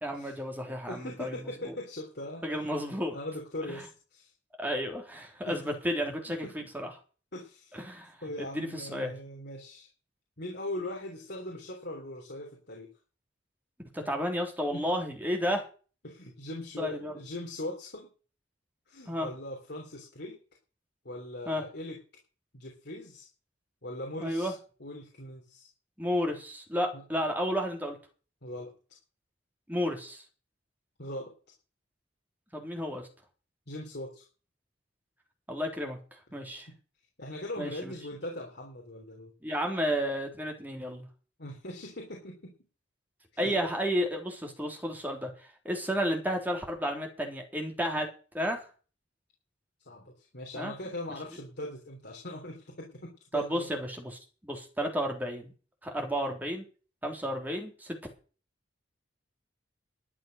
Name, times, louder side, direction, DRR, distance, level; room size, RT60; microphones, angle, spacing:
voice 1, 0.0-1.4 1.7-1.8 2.4-3.1 3.7-3.8 4.6-6.5 6.7-6.9 7.7-8.1 8.4-9.1 13.9-15.7 16.8-17.1 19.1-19.3 21.5-21.6 24.2-24.5 26.0-28.0 29.7-30.2 32.5-33.1 35.5-36.0 36.3-36.7 37.6-37.9 39.4-41.1 43.4-45.3 45.7-48.1 48.3-48.6 50.6-50.7 53.3-55.5 55.8-56.6 57.0-58.0, equal, 10° right, 2 dB, 3.5 m, -32 dB
voice 2, 0.9-2.4 3.1-4.3 5.5-5.6 6.4-6.7 7.3-7.8 8.2-9.9 10.4-12.9 14.7-14.9 16.0-18.1 18.9-20.4 21.1-22.0 22.5-23.3 23.8-24.5 24.8-25.7 26.9-27.0 28.4-28.7 31.0-31.3 33.7-34.2 36.7-36.8 37.2-39.3 41.4-42.5 43.3-43.7 49.9-53.7, left 1 dB, 60° left, 0 dB, 3.5 m, -40 dB
12.5 x 9.3 x 6.6 m, 0.36 s
head